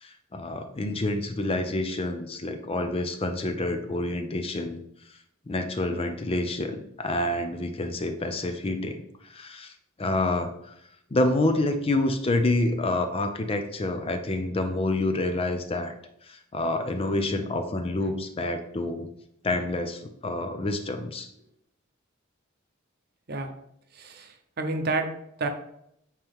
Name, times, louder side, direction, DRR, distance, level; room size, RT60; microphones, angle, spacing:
voice 1, 0.0-4.8 5.5-9.7 10.0-10.7 11.1-15.9 16.3-19.1 19.4-21.3, left 2 dB, 30° left, 7 dB, 0.5 m, -28 dB
voice 2, 23.9-25.1 25.4-25.5, right 3 dB, 50° right, 6 dB, 0.8 m, -29 dB
8.9 x 3.0 x 3.6 m, 0.75 s
head